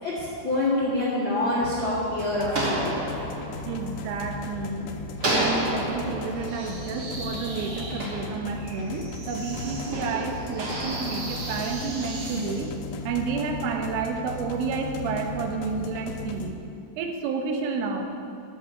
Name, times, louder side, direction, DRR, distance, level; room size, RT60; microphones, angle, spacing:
voice 1, 0.0-3.0, left 1 dB, 60° left, -7 dB, 1.2 m, -26 dB
sound 1, 1.0-4.7 5.2-8.9 9.5-12.2, right 1 dB, 35° right, 1.8 m, -32 dB
sound 2, 2.2-16.5, left 3 dB, 85° left, 3.4 m, -37 dB
voice 2, 3.7-5.0 5.3-12.7 13.0-16.6 17.0-18.1, right 5 dB, 80° right, 3 dB, 3.7 m, -30 dB
sound 3, 6.4-12.7, right 2 dB, 55° right, 3.3 m, -39 dB
13.5 x 6.6 x 8.3 m, 2.6 s
omnidirectional pair, 5.9 m